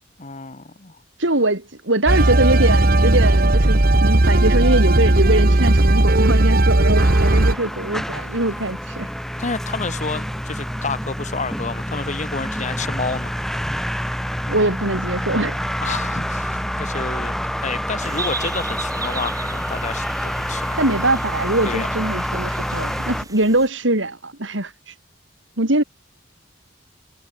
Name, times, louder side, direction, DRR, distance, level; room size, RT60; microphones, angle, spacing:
voice 1, 0.2-1.0 9.4-13.3 15.8-20.8 21.6-21.9, left 4 dB, 40° left, 1.6 m, -30 dB
voice 2, 1.2-9.1 14.5-15.6 20.8-24.9 25.6-25.8, right 2 dB, 75° right, 5.0 m, -22 dB
sound 1, 2.1-7.5, right 1 dB, 50° right, 1.5 m, -15 dB
sound 2, 7.0-23.2, equal, ahead, 5.6 m, -27 dB
sound 3, 18.0-23.7, right 4 dB, 20° right, 2.1 m, -36 dB
head